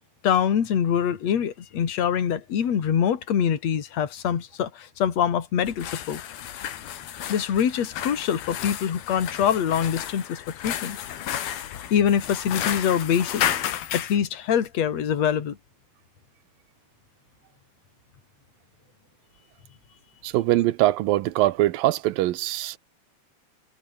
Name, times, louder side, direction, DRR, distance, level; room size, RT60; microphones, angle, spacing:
voice 1, 0.2-6.2 7.3-11.0 11.9-13.4 13.9-15.6, left 8 dB, 50° left, 3.3 m, -24 dB
sound 1, 5.6-14.2, left 11 dB, 80° left, 3.9 m, -32 dB
voice 2, 20.2-22.8, right 16 dB, 75° right, 2.5 m, -22 dB
omnidirectional pair, 4.3 m